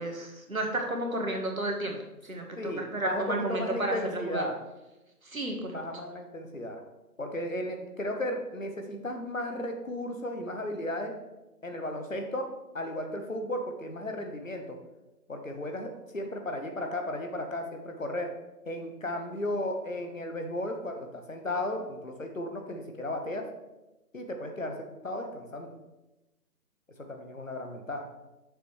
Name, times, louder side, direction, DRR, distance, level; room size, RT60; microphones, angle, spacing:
voice 1, 0.0-2.0 2.2-4.5 5.2-5.8, right 1 dB, 60° right, 2 dB, 1.5 m, -32 dB
voice 2, 2.6-4.6 5.7-6.8 7.2-11.1 11.6-12.5 12.7-14.8 15.3-18.3 18.6-23.5 24.1-24.8 25.0-25.7 27.1-28.1, left 1 dB, 55° left, 4 dB, 1.1 m, -35 dB
7.2 x 6.8 x 3.1 m, 1.0 s
figure-of-eight pair, 160°, 47 cm